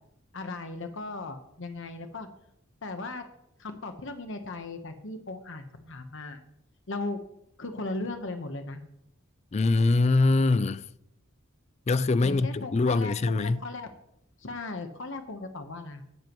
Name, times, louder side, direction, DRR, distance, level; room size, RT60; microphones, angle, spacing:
voice 1, 0.3-2.3 2.8-3.2 3.6-6.4 6.9-7.2 7.6-8.8 12.2-13.9 14.4-16.0, left 2 dB, 60° left, 1.1 m, -37 dB
voice 2, 9.5-10.9 11.9-13.6, left 3 dB, 30° left, 0.3 m, -23 dB
16.0 x 10.5 x 3.1 m
head